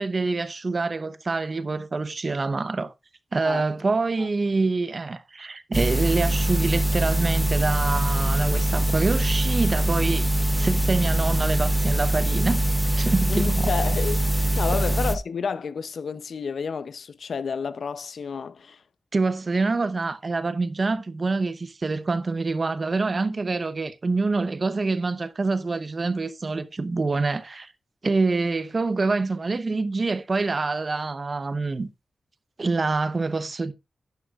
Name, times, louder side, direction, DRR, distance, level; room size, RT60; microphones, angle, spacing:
voice 1, 0.0-2.9 3.3-10.3 10.6-12.6 13.0-13.7 19.1-27.7 28.0-31.9 32.6-33.7, right 3 dB, 45° right, 0.8 m, -26 dB
sound 1, 5.7-15.1, right 1 dB, 5° left, 0.8 m, -23 dB
voice 2, 13.3-18.8, left 6 dB, 80° left, 0.6 m, -30 dB
11.0 x 10.5 x 2.4 m
wide cardioid pair, 95°, 0 cm